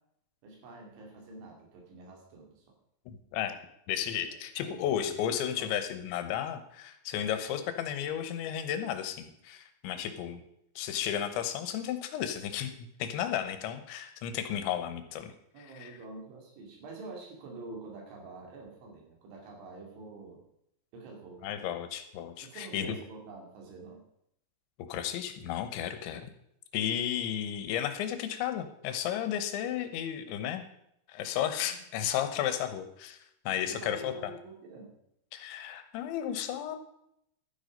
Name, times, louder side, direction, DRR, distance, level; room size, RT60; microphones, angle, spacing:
voice 1, 0.4-2.7 4.6-5.0 5.6-5.8 15.5-20.4 20.9-21.6 22.4-24.0 26.1-26.2 31.7-31.8 33.6-35.0, right 3 dB, 80° right, 1 dB, 5.1 m, -47 dB
voice 2, 3.1-3.6 3.9-10.4 10.8-15.3 15.7-16.0 21.4-23.0 24.9-26.2 26.7-30.6 31.1-33.2 33.5-34.3 35.3-36.8, left 10 dB, 80° left, 9 dB, 3.3 m, -33 dB
12.5 x 9.7 x 5.2 m, 0.76 s
omnidirectional pair, 5.4 m